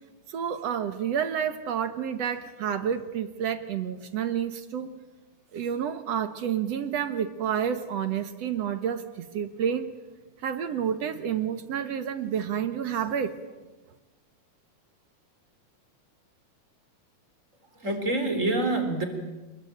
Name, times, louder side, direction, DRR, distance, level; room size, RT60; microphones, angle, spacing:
voice 1, 0.3-4.9 5.5-9.9 10.4-13.4, right 8 dB, 60° right, 11 dB, 2.2 m, -29 dB
voice 2, 17.7-19.1, right 2 dB, 25° right, 6 dB, 4.1 m, -26 dB
27.5 x 21.5 x 9.0 m, 1.2 s
omnidirectional pair, 3.5 m